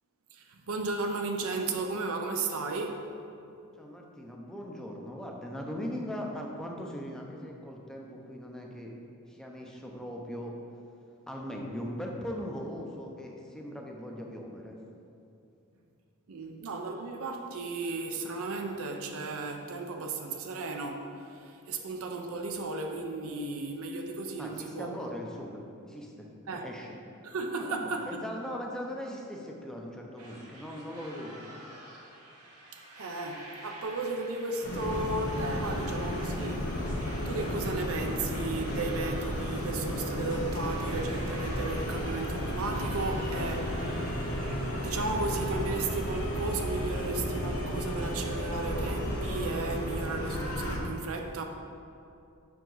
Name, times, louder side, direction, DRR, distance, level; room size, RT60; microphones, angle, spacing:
voice 1, 0.3-3.0 16.3-24.9 26.5-26.7 27.2-28.2 32.7-36.8 37.2-43.8 44.1-44.3 44.8-51.4, right 3 dB, 70° right, 4 dB, 0.6 m, -35 dB
voice 2, 3.8-8.9 9.3-10.5 11.3-14.8 24.4-27.0 27.5-31.5, equal, 5° left, 0 dB, 0.5 m, -39 dB
sound 1, 30.2-44.7, right 1 dB, 90° right, 0.9 m, -48 dB
sound 2, 34.6-50.8, equal, 80° left, 0.9 m, -33 dB
6.0 x 4.7 x 3.9 m, 2.6 s
head